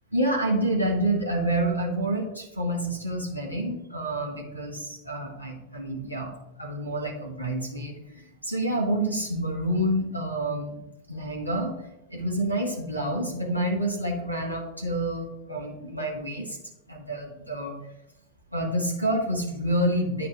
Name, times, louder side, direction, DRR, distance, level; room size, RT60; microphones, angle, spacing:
voice 1, 0.1-10.8 11.1-11.7 12.1-16.6 16.9-17.8 18.5-20.3, right 1 dB, 90° left, 0 dB, 1.5 m, -28 dB
9.8 x 4.2 x 4.3 m, 0.89 s
figure-of-eight pair, 90°, 0 cm